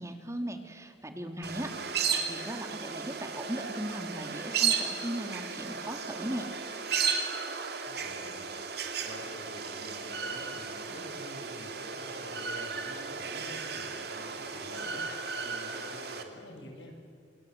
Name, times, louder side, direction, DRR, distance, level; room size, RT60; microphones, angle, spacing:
voice 1, 0.0-6.5, right 1 dB, 15° right, 6 dB, 2.1 m, -38 dB
voice 2, 1.4-1.9 2.3-2.4 7.5-8.5 8.9-16.9, left 1 dB, 85° left, 2 dB, 6.8 m, -48 dB
sound 1, 1.4-16.2, right 6 dB, 60° right, 2.8 m, -34 dB
27.5 x 26.5 x 8.0 m, 2.2 s
head